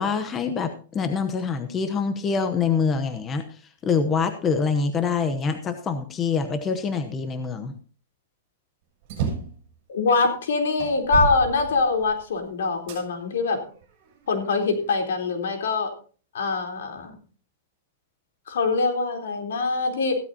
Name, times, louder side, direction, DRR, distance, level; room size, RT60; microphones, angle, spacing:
voice 1, 0.0-3.4 3.8-7.7, left 5 dB, 15° left, 8 dB, 0.9 m, -25 dB
sound 1, 9.0-9.6 10.3-10.4 10.8-12.2 12.9-13.0 13.8-14.8, right 6 dB, 40° right, 7.2 m, -30 dB
voice 2, 9.9-13.6 14.3-15.9 16.3-17.2 18.5-20.1, left 4 dB, 80° left, 4 dB, 3.7 m, -24 dB
15.5 x 13.0 x 2.8 m, 0.39 s
supercardioid pair, 165°, 0 cm